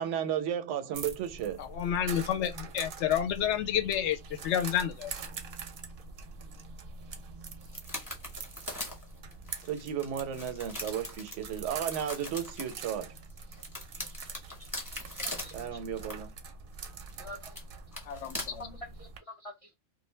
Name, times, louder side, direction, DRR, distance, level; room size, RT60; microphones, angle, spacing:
voice 1, 0.0-1.6 9.6-13.1 15.5-16.3, right 9 dB, 85° right, 0.9 m, -34 dB
sound 1, 0.9-19.2, right 4 dB, 60° right, 0.7 m, -44 dB
voice 2, 1.6-5.1 18.1-18.8, left 9 dB, 75° left, 0.9 m, -30 dB
sound 2, 7.6-12.7 13.3-15.6 16.0-16.1 17.1-17.2 17.5-17.6 17.9-18.6, left 1 dB, 20° left, 1.0 m, -41 dB
voice 3, 15.2-15.8 17.2-17.6 18.6-19.7, left 1 dB, 60° left, 0.3 m, -47 dB
2.5 x 2.1 x 3.1 m
omnidirectional pair, 1.2 m